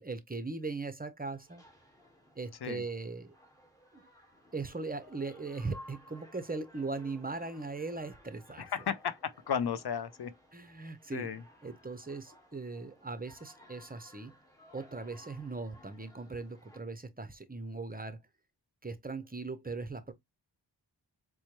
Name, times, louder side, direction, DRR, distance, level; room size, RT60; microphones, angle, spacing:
voice 1, 0.0-1.6 2.4-3.3 3.9-4.0 4.5-8.7 10.5-11.3 11.6-14.3 14.7-18.2 18.8-20.1, right 3 dB, 20° right, 0.6 m, -39 dB
sound 1, 1.2-16.8, left 1 dB, 10° left, 1.3 m, -58 dB
voice 2, 8.6-10.3 11.1-11.4, left 7 dB, 60° left, 0.5 m, -34 dB
4.3 x 2.1 x 2.9 m
cardioid pair, 40°, 44 cm